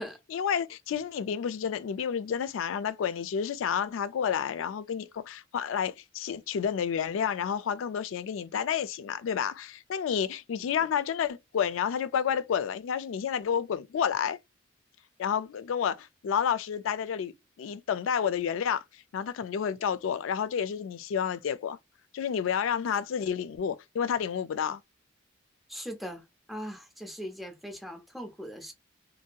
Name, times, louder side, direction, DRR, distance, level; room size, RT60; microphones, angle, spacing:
voice 1, 0.3-14.4 15.2-17.3 17.6-18.8 19.1-21.8 22.1-24.8, left 7 dB, 75° left, 0.3 m, -30 dB
voice 2, 25.7-26.2 26.5-28.7, equal, ahead, 0.5 m, -39 dB
2.7 x 2.6 x 2.2 m
head